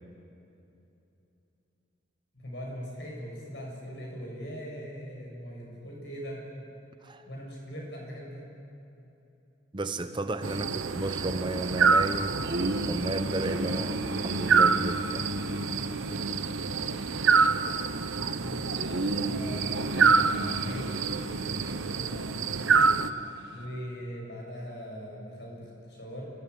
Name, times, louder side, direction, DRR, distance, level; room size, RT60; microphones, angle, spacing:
voice 1, 2.3-6.4 7.2-8.6 18.3-18.8 19.2-21.0 21.3-22.9 23.5-26.3, equal, 60° left, -2 dB, 7.2 m, -41 dB
voice 2, 9.7-12.4 12.9-15.3 17.7-17.8, right 2 dB, 25° right, 8 dB, 0.7 m, -33 dB
sound 1, 10.4-23.1, right 5 dB, 80° right, 0.8 m, -27 dB
sound 2, 12.4-23.7, right 1 dB, 55° right, 1.7 m, -36 dB
28.0 x 14.5 x 9.7 m, 2.9 s
head